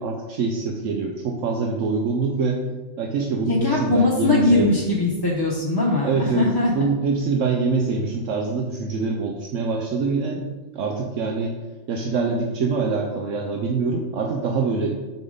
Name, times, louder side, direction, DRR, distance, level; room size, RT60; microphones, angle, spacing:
voice 1, 0.0-2.6 3.0-4.7 6.0-6.5 6.7-10.5 10.7-11.6 11.9-15.0, right 4 dB, 75° right, 1 dB, 1.1 m, -24 dB
voice 2, 3.5-6.7, left 2 dB, 20° left, -3 dB, 0.8 m, -21 dB
6.7 x 6.3 x 3.9 m, 1.2 s
omnidirectional pair, 1.3 m